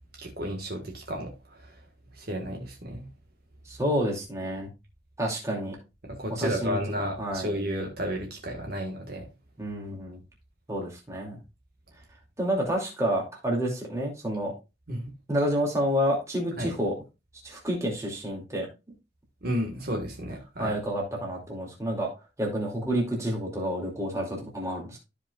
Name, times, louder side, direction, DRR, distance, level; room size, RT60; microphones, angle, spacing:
voice 1, 0.2-1.8 2.1-3.1 6.0-9.3 14.9-15.1 16.6-16.7 19.4-20.8, equal, 50° right, 1 dB, 1.6 m, -32 dB
voice 2, 3.7-4.7 5.2-5.8 6.3-6.8 7.2-7.5 9.6-10.2 10.7-11.4 12.4-14.5 15.3-16.9 17.4-18.7 20.6-22.1 22.4-25.0, equal, 15° right, -2 dB, 2.5 m, -29 dB
13.5 x 5.0 x 2.3 m, 0.27 s
head